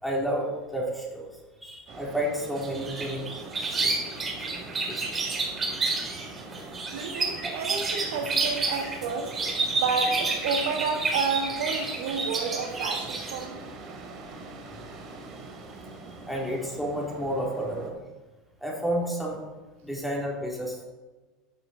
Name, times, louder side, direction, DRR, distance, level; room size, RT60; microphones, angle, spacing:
voice 1, 0.0-1.3 1.6-3.2 3.6-4.0 4.9-5.2 16.3-18.0 18.6-19.4 19.8-20.8, equal, ahead, -3 dB, 3.8 m, -31 dB
sound 1, 1.9-17.9, right 3 dB, 50° right, 2.8 m, -43 dB
sound 2, 2.6-13.4, right 3 dB, 25° right, 3.8 m, -30 dB
voice 2, 6.9-9.3 9.8-13.6, right 5 dB, 80° right, 3 dB, 1.6 m, -30 dB
13.5 x 6.9 x 4.6 m, 1.2 s
hypercardioid pair, 95°, 0 cm